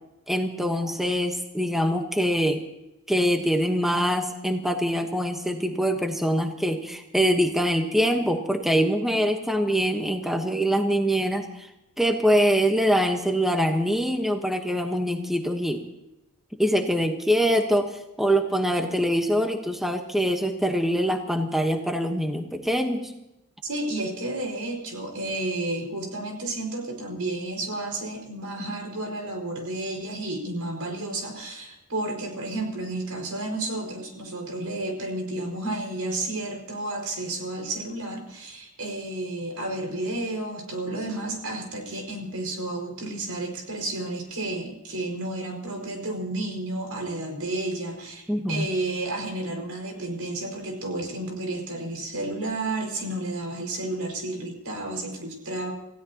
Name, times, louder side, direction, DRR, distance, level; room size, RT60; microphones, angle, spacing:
voice 1, 0.3-2.6 3.1-11.7 12.0-15.8 16.6-17.9 18.2-23.1 48.3-48.7, equal, ahead, 4 dB, 1.0 m, -24 dB
voice 2, 23.6-55.7, right 2 dB, 85° right, 2 dB, 5.2 m, -31 dB
28.0 x 16.0 x 2.9 m, 0.89 s
head